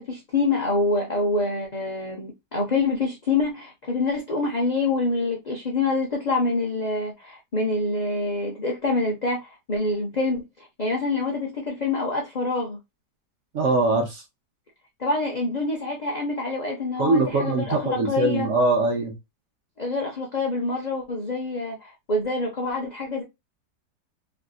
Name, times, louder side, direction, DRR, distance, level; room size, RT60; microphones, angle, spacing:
voice 1, 0.0-12.8 15.0-18.5 19.8-23.2, left 3 dB, 65° left, 0.4 m, -26 dB
voice 2, 13.5-14.2 17.0-19.1, right 2 dB, 60° right, 0.8 m, -22 dB
3.4 x 2.6 x 2.3 m
omnidirectional pair, 1.8 m